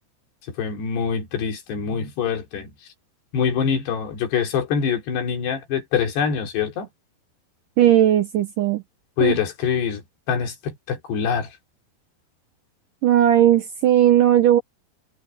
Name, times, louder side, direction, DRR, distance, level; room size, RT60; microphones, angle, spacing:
voice 1, 0.6-2.7 3.3-6.9 9.2-10.0 10.3-11.5, left 7 dB, 75° left, 5.2 m, -24 dB
voice 2, 7.8-8.8 9.2-9.4 13.0-14.6, right 11 dB, 70° right, 2.1 m, -17 dB
omnidirectional pair, 4.9 m